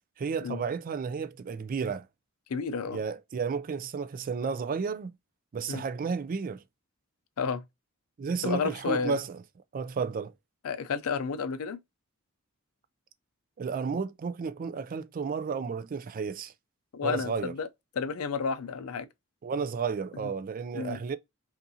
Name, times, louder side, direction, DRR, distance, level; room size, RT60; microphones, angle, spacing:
voice 1, 0.2-2.0 2.9-5.1 5.5-6.6 8.2-9.4 9.7-10.3 13.6-16.5 17.0-17.5 19.4-21.2, right 5 dB, 40° right, 0.3 m, -32 dB
voice 2, 2.5-3.0 5.7-5.8 7.4-7.6 8.4-9.2 10.6-11.8 16.9-17.7 17.9-19.1 20.7-21.0, left 5 dB, 75° left, 0.5 m, -31 dB
5.3 x 2.5 x 2.7 m
head